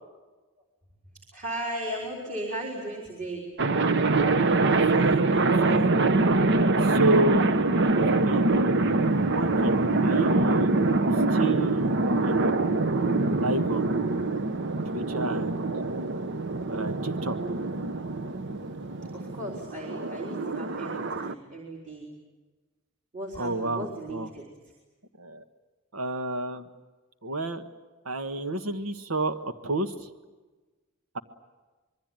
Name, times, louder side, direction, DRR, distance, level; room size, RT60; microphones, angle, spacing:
voice 1, 1.3-3.5 7.6-7.9 19.1-22.1 23.1-24.5, right 1 dB, 40° right, -2 dB, 4.0 m, -36 dB
sound 1, 3.6-21.3, right 3 dB, 60° right, 0.9 m, -24 dB
voice 2, 4.6-6.0 6.8-7.5 8.0-8.7 9.2-10.7 11.3-11.9 12.2-12.6 13.4-14.0 14.8-15.6 16.7-17.4 23.3-24.3 25.2-25.4 25.9-26.6 27.2-27.6 28.0-30.1, right 2 dB, 90° right, 8 dB, 1.5 m, -30 dB
26.0 x 22.5 x 9.1 m, 1.2 s
head